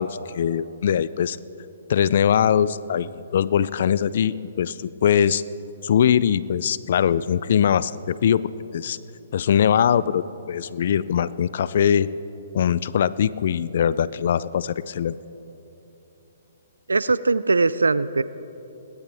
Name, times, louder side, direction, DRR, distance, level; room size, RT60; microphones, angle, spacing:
voice 1, 0.0-1.4 1.9-5.4 5.8-8.4 8.7-9.0 9.3-12.1 12.5-15.2, left 8 dB, 60° left, 18 dB, 0.4 m, -21 dB
voice 2, 16.9-18.2, right 3 dB, 90° right, 17 dB, 0.4 m, -20 dB
21.5 x 18.5 x 3.5 m, 3.0 s
hypercardioid pair, 135°, 0 cm